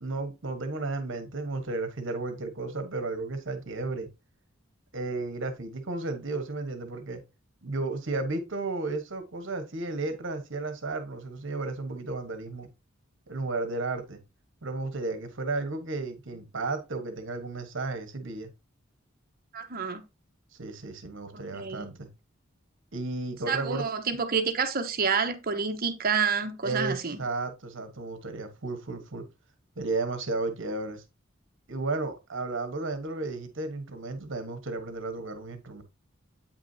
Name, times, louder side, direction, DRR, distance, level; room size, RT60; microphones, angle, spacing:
voice 1, 0.0-4.1 4.9-7.2 7.6-12.7 13.3-14.2 14.6-18.5 20.6-22.1 22.9-23.8 26.6-29.3 29.8-31.0 31.7-35.8, right 3 dB, 65° right, 1.2 m, -33 dB
voice 2, 19.5-20.0 21.3-21.9 23.5-27.2, right 5 dB, 50° right, 1.0 m, -28 dB
8.6 x 6.0 x 2.7 m
head